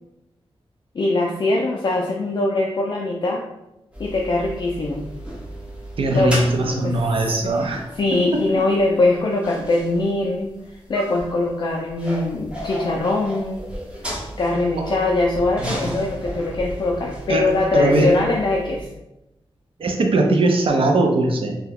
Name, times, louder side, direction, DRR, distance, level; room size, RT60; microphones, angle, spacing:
voice 1, 0.9-3.5 4.0-5.1 6.1-7.0 7.4-7.7 8.0-13.6 14.4-18.9, left 2 dB, 45° left, -1 dB, 0.3 m, -22 dB
sound 1, 3.9-18.8, equal, 10° right, 0.7 m, -35 dB
voice 2, 6.0-7.9 8.6-8.7 14.8-14.9 15.6-15.7 17.3-18.2 19.8-21.6, right 2 dB, 65° right, 3 dB, 0.5 m, -20 dB
2.7 x 2.2 x 3.5 m, 0.92 s
wide cardioid pair, 155°, 10 cm